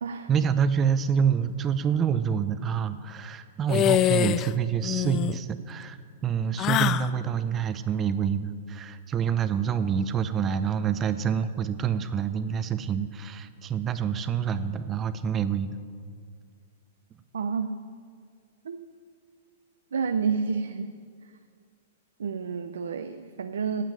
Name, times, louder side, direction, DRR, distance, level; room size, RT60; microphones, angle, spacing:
voice 1, 0.3-6.0 6.2-15.8, right 7 dB, 25° right, 12 dB, 0.5 m, -27 dB
sound 1, 3.7-4.5 4.8-5.4 6.6-7.1, left 12 dB, 30° left, 0.3 m, -24 dB
voice 2, 17.3-17.8 18.6-18.9 19.9-20.9 22.2-23.8, right 5 dB, 85° right, 8 dB, 0.5 m, -29 dB
9.1 x 7.4 x 8.9 m, 2.1 s
hypercardioid pair, 135°, 0 cm